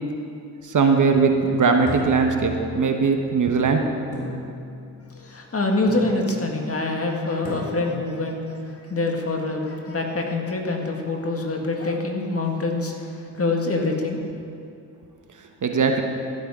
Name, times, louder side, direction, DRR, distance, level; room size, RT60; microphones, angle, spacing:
voice 1, 0.7-3.8 4.2-4.3 15.6-16.0, right 5 dB, 50° right, 4 dB, 1.1 m, -20 dB
sound 1, 1.8-3.0 4.1-4.9 5.9-6.5 7.4-8.1, left 1 dB, 80° left, 2.8 m, -35 dB
voice 2, 5.2-8.4 8.9-12.9 13.4-14.3, left 2 dB, 35° left, 1 dB, 1.9 m, -25 dB
15.0 x 9.3 x 3.7 m, 2.5 s
supercardioid pair, 60°, 40 cm